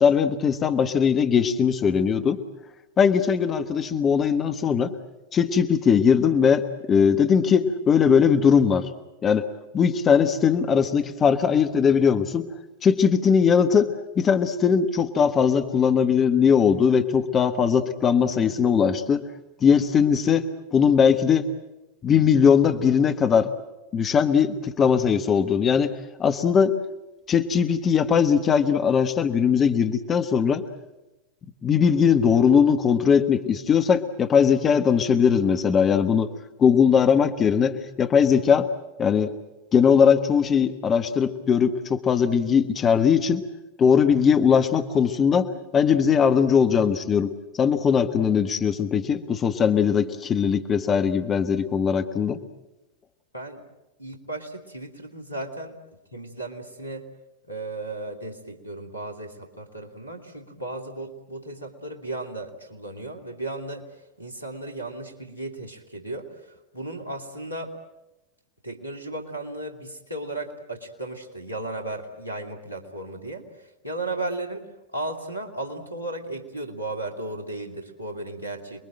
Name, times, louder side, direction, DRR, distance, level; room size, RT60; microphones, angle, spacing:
voice 1, 0.0-2.4 3.0-4.9 5.3-8.9 9.2-9.5 9.7-12.5 12.8-19.2 19.6-21.5 22.0-23.5 23.9-26.7 27.3-30.6 31.6-36.3 36.6-38.7 39.0-39.3 39.7-43.4 43.8-52.4, left 7 dB, 25° left, 7 dB, 1.4 m, -20 dB
voice 2, 54.0-55.8 56.1-57.1 57.5-67.7 68.6-74.7 74.9-78.8, right 2 dB, 90° left, 4 dB, 2.8 m, -35 dB
28.0 x 22.0 x 7.7 m, 0.98 s
figure-of-eight pair, 90°, 0 cm